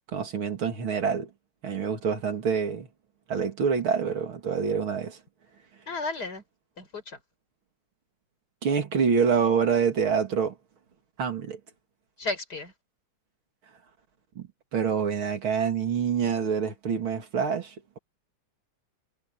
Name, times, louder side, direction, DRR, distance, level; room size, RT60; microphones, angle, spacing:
voice 1, 0.1-1.3 1.6-2.9 3.3-5.2 8.6-10.5 11.2-11.6 14.4-14.5 14.7-18.0, right 6 dB, 85° right, 3.2 m, -26 dB
voice 2, 5.9-6.4 6.8-7.2 12.2-12.7, left 3 dB, 50° left, 5.0 m, -33 dB
omnidirectional pair, 2.2 m